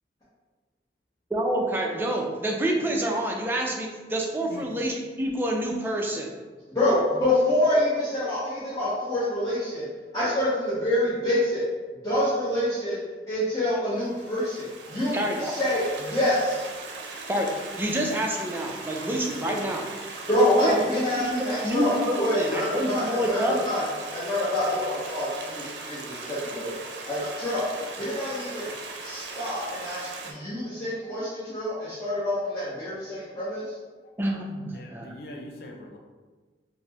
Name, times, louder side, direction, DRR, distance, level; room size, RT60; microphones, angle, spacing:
voice 1, 1.3-6.3 15.1-15.5 17.3-19.9 20.6-21.3 21.6-23.6 34.2-35.1, right 1 dB, 10° right, 0 dB, 0.3 m, -27 dB
voice 2, 6.7-9.9 10.1-11.6 12.0-13.0 13.3-16.7 20.3-23.8 24.1-26.7 27.0-27.6 28.0-28.7 29.0-33.7, left 1 dB, 20° left, -12 dB, 0.8 m, -26 dB
Stream, 14.0-30.3, right 3 dB, 90° right, 0.5 m, -39 dB
voice 3, 34.7-36.0, left 1 dB, 60° left, 1 dB, 0.4 m, -42 dB
4.1 x 2.0 x 2.9 m, 1.3 s
head